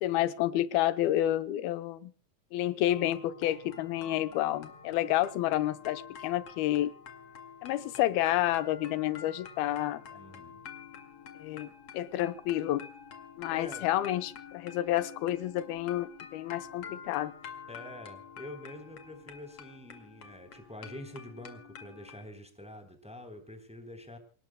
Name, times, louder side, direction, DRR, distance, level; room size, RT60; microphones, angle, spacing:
voice 1, 0.0-2.1 2.5-6.9 7.6-10.0 11.4-12.9 13.4-17.3, left 14 dB, 85° left, 12 dB, 2.8 m, -30 dB
sound 1, 2.9-22.3, left 7 dB, 45° left, 2.8 m, -48 dB
voice 2, 10.1-10.6 13.5-13.9 17.7-24.2, left 1 dB, ahead, 6 dB, 2.9 m, -46 dB
28.5 x 18.5 x 2.2 m, 0.37 s
omnidirectional pair, 4.2 m